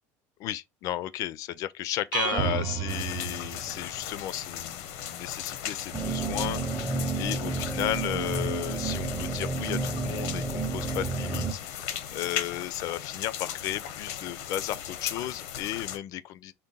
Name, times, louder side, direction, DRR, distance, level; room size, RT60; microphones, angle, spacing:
voice 1, 0.4-16.5, left 13 dB, 50° left, 0.4 m, -34 dB
sound 1, 2.1-4.1, right 8 dB, 55° right, 0.8 m, -31 dB
sound 2, 2.9-16.0, left 10 dB, 90° left, 0.7 m, -37 dB
sound 3, 5.9-11.5, right 3 dB, 10° right, 0.5 m, -31 dB
3.8 x 2.2 x 3.7 m
cardioid pair, 145°, 7 cm